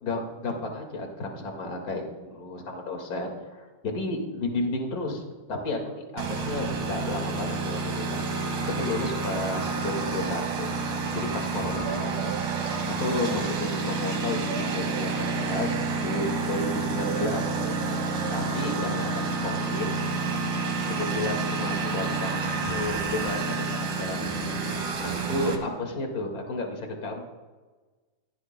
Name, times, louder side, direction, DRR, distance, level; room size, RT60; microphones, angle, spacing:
voice 1, 0.0-5.2 5.5-8.4 8.8-10.7 11.1-12.4 12.9-17.5 18.3-19.9 20.9-24.3 25.0-27.2, left 2 dB, 35° left, 2 dB, 1.9 m, -32 dB
Engine, 6.2-25.6, right 4 dB, 65° right, 3.0 m, -29 dB
sound 1, 11.8-14.0 14.5-16.6 17.0-19.9 20.5-20.6 20.8-20.9, right 8 dB, 85° right, 2.3 m, -39 dB
22.0 x 16.5 x 2.2 m, 1.3 s
omnidirectional pair, 3.7 m